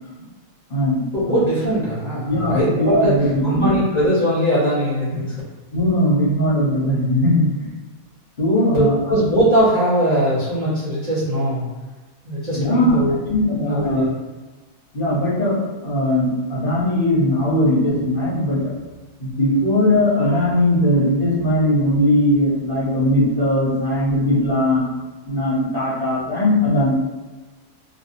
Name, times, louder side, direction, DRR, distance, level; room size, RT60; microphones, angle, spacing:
voice 1, 1.1-5.4 8.7-11.6 12.2-14.1, equal, 35° right, -12 dB, 0.8 m, -20 dB
voice 2, 2.2-3.7 5.7-7.7 8.4-8.9 12.5-13.0 13.3-14.0 14.9-18.6 19.2-24.8 25.3-27.0, left 1 dB, 40° left, -10 dB, 1.1 m, -19 dB
2.7 x 2.6 x 2.5 m, 1.2 s
omnidirectional pair, 1.5 m